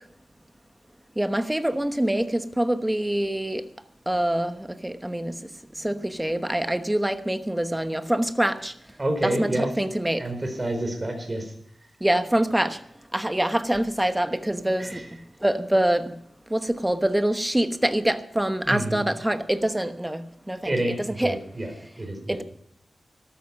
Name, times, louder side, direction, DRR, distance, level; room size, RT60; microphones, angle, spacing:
voice 1, 1.2-3.6 4.1-5.3 5.8-8.7 9.2-10.2 12.0-12.8 13.1-15.0 15.4-16.1 16.5-21.4 22.3-22.4, right 1 dB, 10° right, 1.1 m, -25 dB
voice 2, 9.0-9.7 10.2-11.5 14.8-15.0 18.7-19.0 20.6-21.7 22.0-22.4, right 1 dB, 30° right, 4.3 m, -28 dB
13.0 x 13.0 x 6.0 m
wide cardioid pair, 90°, 0 cm